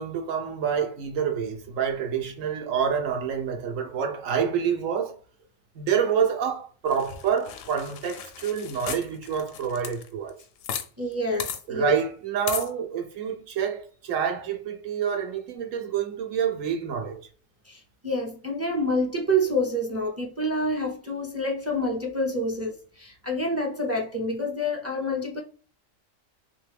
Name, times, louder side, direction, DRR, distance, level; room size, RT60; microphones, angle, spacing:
voice 1, 0.0-5.2 5.7-10.3 11.7-17.2, right 7 dB, 80° right, 1.2 m, -27 dB
sound 1, 6.9-10.9 11.1-11.2 11.4-11.6 12.5-12.7, left 9 dB, 85° left, 1.0 m, -35 dB
voice 2, 11.0-11.9 17.7-25.4, equal, 20° right, 0.4 m, -28 dB
3.3 x 3.0 x 3.3 m
omnidirectional pair, 1.3 m